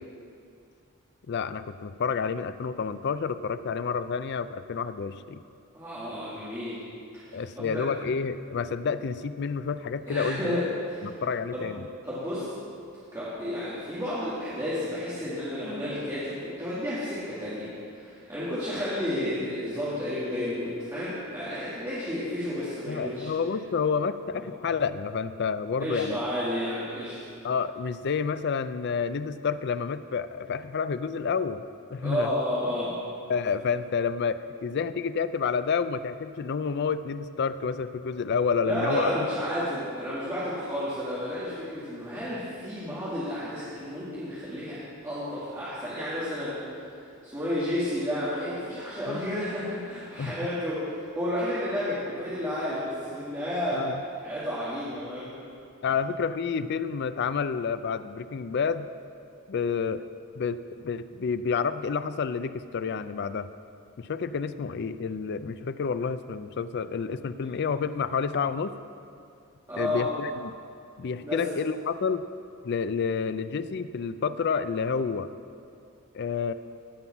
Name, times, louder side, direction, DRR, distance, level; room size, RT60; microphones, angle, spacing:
voice 1, 1.3-5.4 7.3-10.6 11.0-11.8 22.9-26.2 27.4-31.6 31.9-32.3 33.3-39.3 49.1-49.2 50.2-50.4 53.7-54.0 55.8-58.9 59.5-60.0 60.4-63.5 64.0-68.7 69.8-70.6 71.0-72.2 72.6-75.3 76.1-76.5, left 5 dB, 55° left, 12 dB, 0.4 m, -29 dB
voice 2, 5.7-6.8 7.1-7.8 10.1-11.0 11.5-11.7 12.0-12.5 13.1-23.3 24.3-24.4 25.8-27.2 32.0-32.9 38.6-46.6 47.2-53.8 54.2-55.3 67.4-67.5 69.7-70.1 71.2-71.4, left 1 dB, 15° right, -11 dB, 2.1 m, -31 dB
16.0 x 5.5 x 5.9 m, 2.5 s
head